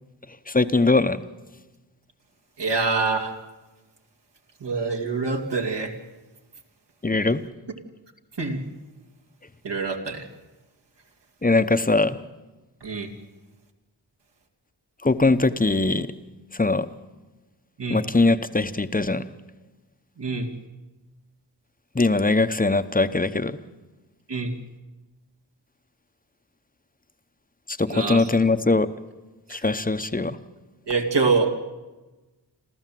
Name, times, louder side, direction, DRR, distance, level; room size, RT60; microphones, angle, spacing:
voice 1, 0.5-1.2 7.0-7.4 11.4-12.2 15.0-16.1 16.6-16.9 17.9-19.2 21.9-23.6 27.7-28.9 29.5-30.4, left 3 dB, 20° left, 11 dB, 0.9 m, -21 dB
voice 2, 2.6-3.3 4.6-5.9 8.4-8.6 9.6-10.2 12.8-13.1 17.8-18.0 20.2-20.5 24.3-24.5 27.9-28.3 29.5-29.6 30.9-31.5, right 4 dB, 70° right, 4 dB, 2.4 m, -25 dB
28.0 x 13.5 x 7.6 m, 1.2 s
wide cardioid pair, 85°, 44 cm